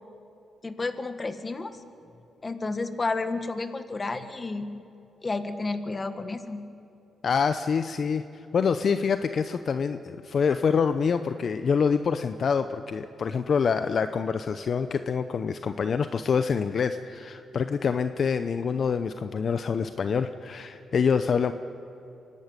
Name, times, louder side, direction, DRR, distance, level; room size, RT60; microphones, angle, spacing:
voice 1, 0.6-1.7 2.4-4.8 5.2-6.7, left 3 dB, 35° left, 9 dB, 1.5 m, -31 dB
voice 2, 7.2-21.5, left 6 dB, 60° left, 10 dB, 0.7 m, -26 dB
24.5 x 12.0 x 9.1 m, 2.8 s
cardioid pair, 70°, 0 cm